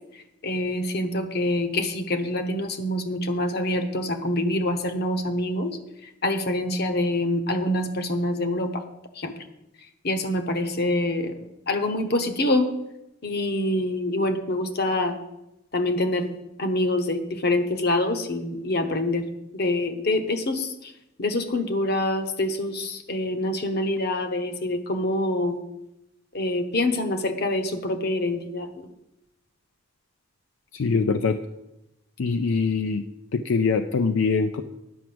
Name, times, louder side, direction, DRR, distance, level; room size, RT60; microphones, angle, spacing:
voice 1, 0.4-5.8 6.2-8.8 9.2-9.3 10.0-11.3 11.7-12.7 13.2-15.2 15.7-16.3 16.6-19.2 19.5-20.9 21.2-25.6 26.3-28.9, left 1 dB, 50° left, 7 dB, 1.0 m, -25 dB
voice 2, 30.7-31.4 32.2-33.0 33.3-34.6, left 4 dB, 75° left, 8 dB, 0.5 m, -23 dB
10.0 x 5.9 x 7.7 m, 0.90 s
head